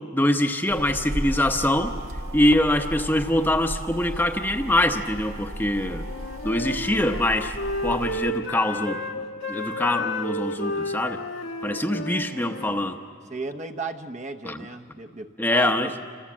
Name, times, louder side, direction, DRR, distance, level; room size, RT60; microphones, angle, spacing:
voice 1, 0.1-1.9 2.3-6.1 6.4-7.6 7.8-9.0 9.5-11.2 11.6-13.0 14.4-14.6 15.4-15.9, left 1 dB, 10° left, 5 dB, 0.8 m, -23 dB
sound 1, 0.7-8.3, right 1 dB, 85° right, 1.7 m, -35 dB
Wind instrument woodwind instrument, 6.0-12.8, left 2 dB, 75° left, 1.7 m, -32 dB
voice 2, 13.3-16.2, right 2 dB, 35° right, 6 dB, 0.8 m, -35 dB
28.0 x 26.5 x 7.4 m, 2.2 s
head